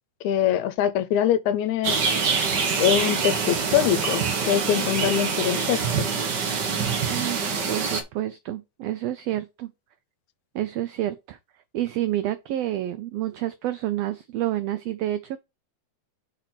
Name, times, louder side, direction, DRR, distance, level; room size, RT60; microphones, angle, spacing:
voice 1, 0.2-2.0 2.8-6.1, left 10 dB, 80° left, 2.0 m, -23 dB
sound 1, 1.8-8.0, right 5 dB, 70° right, 1.0 m, -25 dB
voice 2, 7.1-7.4 7.7-9.7 10.5-11.4 11.7-15.4, right 13 dB, 85° right, 1.4 m, -29 dB
5.0 x 4.3 x 5.8 m
omnidirectional pair, 3.4 m